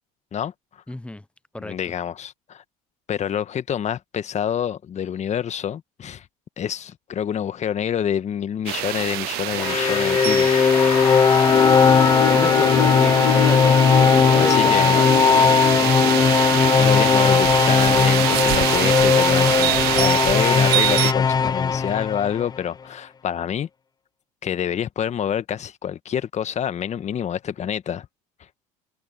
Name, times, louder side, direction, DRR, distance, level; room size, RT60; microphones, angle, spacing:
voice 1, 0.9-1.2 1.5-1.8 12.3-16.2, left 1 dB, 5° left, 1.0 m, -32 dB
voice 2, 1.6-2.6 3.1-6.2 6.6-10.5 14.3-15.0 16.8-23.7 24.4-28.1, left 9 dB, 40° left, 1.7 m, -27 dB
sound 1, 8.7-21.1, right 21 dB, 60° right, 1.0 m, -25 dB
sound 2, 9.5-22.6, left 6 dB, 25° left, 0.6 m, -18 dB
sound 3, 9.6-20.5, left 15 dB, 85° left, 0.4 m, -28 dB
hypercardioid pair, 70°, 18 cm